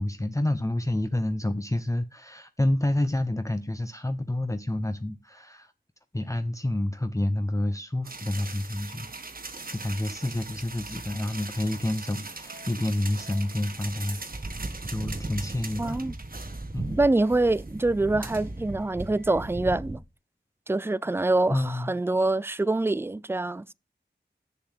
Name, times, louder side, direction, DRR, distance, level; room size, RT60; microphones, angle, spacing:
voice 1, 0.0-5.7 6.1-9.1 9.4-14.4 14.8-16.0 16.7-17.0 21.5-21.9, left 1 dB, 15° left, 0.8 m, -29 dB
sound 1, 8.0-19.8, right 3 dB, 50° right, 1.5 m, -42 dB
sound 2, 14.3-20.0, right 2 dB, 35° right, 1.1 m, -37 dB
voice 2, 15.8-16.1 17.0-20.0 20.7-23.7, right 2 dB, 10° right, 0.4 m, -25 dB
7.9 x 7.0 x 6.3 m
wide cardioid pair, 50°, 19 cm